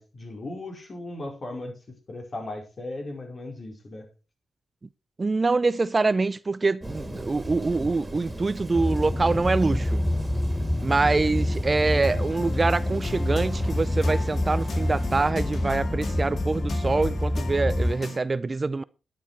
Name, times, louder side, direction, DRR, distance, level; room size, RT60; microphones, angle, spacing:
voice 1, 0.0-1.7 2.1-4.1 7.1-7.3 11.7-11.9, left 2 dB, 45° left, 5.0 m, -37 dB
voice 2, 5.2-10.0 10.8-18.8, right 3 dB, 35° right, 0.5 m, -25 dB
Thunder, 6.8-15.3, right 1 dB, 15° right, 3.2 m, -40 dB
sound 1, 8.7-17.9, left 1 dB, 20° left, 1.2 m, -27 dB
sound 2, 11.8-18.2, left 4 dB, 60° left, 2.1 m, -40 dB
10.5 x 9.8 x 4.4 m
supercardioid pair, 55°, 0 cm